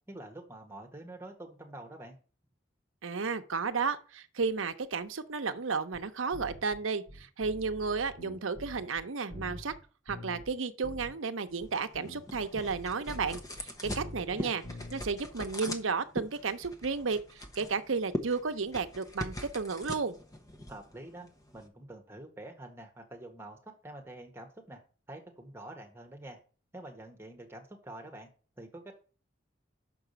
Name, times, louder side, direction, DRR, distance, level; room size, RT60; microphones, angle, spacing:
voice 1, 0.1-2.2 14.0-14.6 20.7-21.3 21.5-24.8 25.1-26.4 26.7-28.3 28.6-28.9, right 1 dB, 10° right, 1.6 m, -47 dB
voice 2, 3.0-9.7 10.1-14.6 14.9-17.2 17.6-20.1, right 4 dB, 80° right, 0.8 m, -33 dB
sound 1, 5.9-6.0 6.3-6.8 7.1-9.0 9.3-9.8 10.1-10.5 10.8-11.1 11.6-11.7 11.9-14.4 14.6-15.1, left 1 dB, 65° left, 4.4 m, -45 dB
sound 2, 11.5-21.7, left 1 dB, 15° left, 0.9 m, -42 dB
6.1 x 5.0 x 6.8 m
head